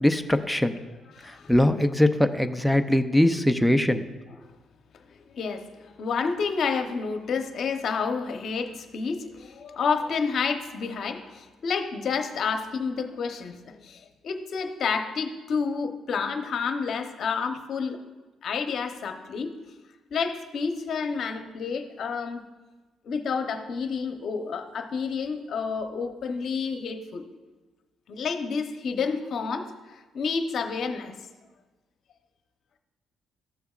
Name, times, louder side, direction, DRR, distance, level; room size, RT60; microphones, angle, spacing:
voice 1, 0.0-0.7 1.5-4.0, left 1 dB, ahead, 8 dB, 0.6 m, -21 dB
voice 2, 1.1-1.6 5.3-18.0 18.4-19.5 20.1-22.4 23.0-27.2 28.1-31.1, left 5 dB, 60° left, 6 dB, 0.9 m, -30 dB
14.0 x 6.8 x 2.4 m, 1.2 s
cardioid pair, 90°, 0 cm